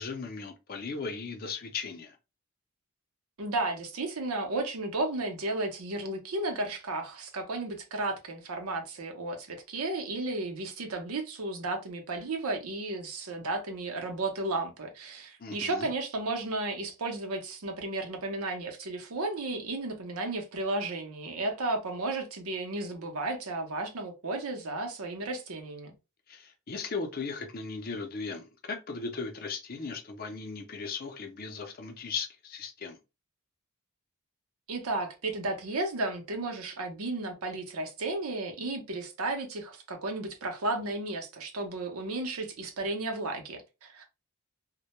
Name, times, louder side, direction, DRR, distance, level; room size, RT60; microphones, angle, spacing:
voice 1, 0.0-2.2 15.4-15.9 26.3-33.0, left 4 dB, 40° left, 0.5 m, -37 dB
voice 2, 3.4-25.9 34.7-44.2, right 2 dB, 75° right, 0.7 m, -33 dB
2.1 x 2.1 x 2.9 m
head